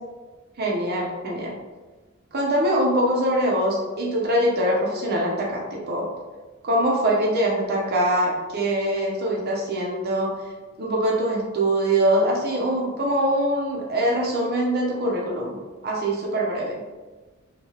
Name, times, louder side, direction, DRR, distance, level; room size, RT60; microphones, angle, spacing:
voice 1, 0.6-1.6 2.3-6.1 6.6-10.4 10.8-16.8, right 1 dB, 45° right, -2 dB, 0.7 m, -23 dB
3.1 x 2.9 x 2.9 m, 1.3 s
head